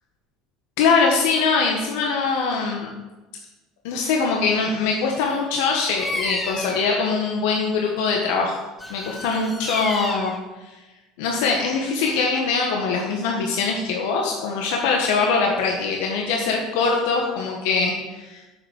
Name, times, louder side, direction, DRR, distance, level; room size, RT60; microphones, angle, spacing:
voice 1, 0.8-2.9 3.8-8.6 8.9-10.3 11.2-18.6, left 4 dB, 85° left, 0 dB, 1.5 m, -22 dB
Bird vocalization bird call bird song, 5.9-6.9 8.8-10.4, left 2 dB, 10° left, 0.8 m, -31 dB
7.6 x 7.1 x 6.6 m, 1.1 s
cardioid pair, 150°, 0 cm